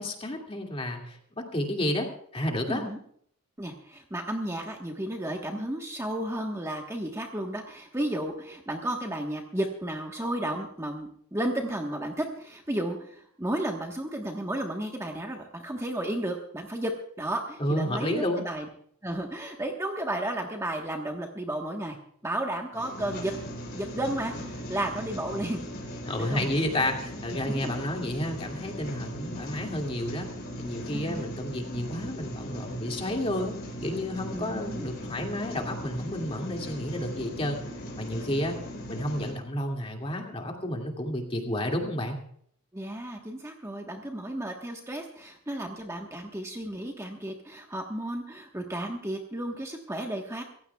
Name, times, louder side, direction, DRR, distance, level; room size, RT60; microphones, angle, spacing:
voice 1, 0.0-2.1 2.3-2.8 17.6-18.4 26.1-30.3 30.6-33.5 33.8-37.6 38.0-38.6 38.9-42.2, left 1 dB, 25° left, 1 dB, 2.3 m, -31 dB
voice 2, 2.7-3.0 3.6-16.9 17.2-18.7 19.0-22.0 22.2-23.3 23.7-25.6 26.2-26.5 27.4-27.8 30.9-31.2 34.3-34.8 42.7-50.4, right 1 dB, 15° right, 1 dB, 1.3 m, -33 dB
sound 1, 22.7-39.3, equal, 50° left, 4.0 m, -39 dB
26.0 x 15.5 x 2.3 m, 0.63 s
head